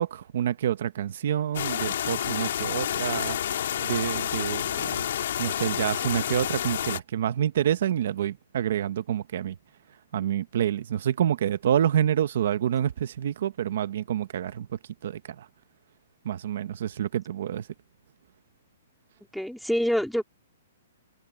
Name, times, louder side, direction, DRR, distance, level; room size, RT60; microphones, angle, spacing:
voice 1, 0.0-3.4 3.8-5.1 5.4-9.5 10.1-14.7 15.0-15.4 16.2-17.6, right 10 dB, 45° right, 1.0 m, -27 dB
sound 1, 1.5-7.0, left 10 dB, 50° left, 2.4 m, -29 dB
voice 2, 19.3-20.2, equal, ahead, 3.7 m, -26 dB
hypercardioid pair, 180°, 0 cm